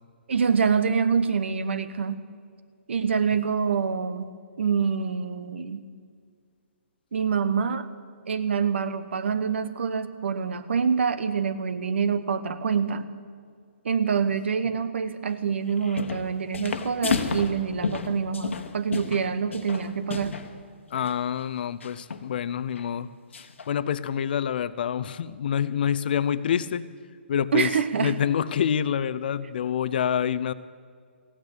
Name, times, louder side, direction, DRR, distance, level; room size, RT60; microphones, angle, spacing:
voice 1, 0.3-2.3 2.9-4.3 4.6-5.9 7.1-7.9 8.3-13.1 13.8-20.4 27.5-28.2, right 6 dB, 70° right, 13 dB, 1.0 m, -26 dB
sound 1, 15.7-16.3 16.5-20.5 20.9-21.1 21.8-22.3 22.7-22.9 23.3-23.7, left 5 dB, 80° left, 1.3 m, -31 dB
voice 2, 20.9-23.1 23.4-26.8 27.3-27.7 28.0-30.5, left 8 dB, 50° left, 16 dB, 0.6 m, -27 dB
16.0 x 9.3 x 8.1 m, 2.2 s
hypercardioid pair, 160°, 7 cm